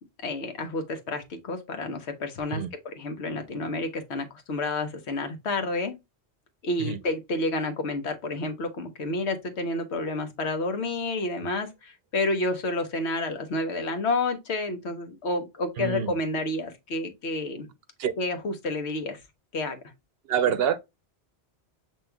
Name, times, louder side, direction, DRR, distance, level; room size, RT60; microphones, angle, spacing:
voice 1, 0.2-5.9 6.6-17.7 18.2-19.2 19.5-19.8, left 2 dB, 80° left, 1.1 m, -30 dB
voice 2, 15.8-16.1 18.0-18.1 20.3-20.8, right 8 dB, 70° right, 0.7 m, -26 dB
7.2 x 3.1 x 2.2 m
omnidirectional pair, 1.1 m